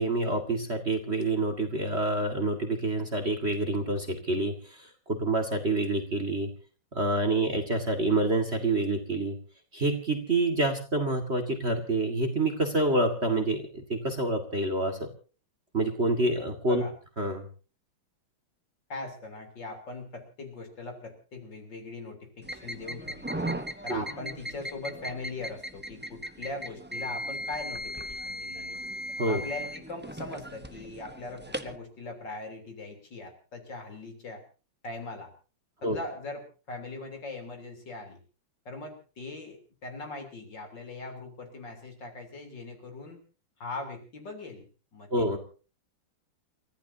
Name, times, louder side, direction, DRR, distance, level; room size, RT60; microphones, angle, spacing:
voice 1, 0.0-6.5 6.9-9.4 9.7-15.1 15.7-16.8 17.2-17.5 23.9-24.0 29.2-29.4 35.8-36.0 45.1-45.4, right 2 dB, 30° right, 6 dB, 2.1 m, -27 dB
voice 2, 18.9-23.3 23.8-28.8 29.2-34.4 34.8-35.3 35.8-38.2 38.7-43.2 43.6-45.4, left 2 dB, 55° left, 5 dB, 4.2 m, -40 dB
sound 1, 22.4-31.8, right 1 dB, 15° right, 0.3 m, -37 dB
29.5 x 15.0 x 2.8 m, 0.36 s
omnidirectional pair, 2.3 m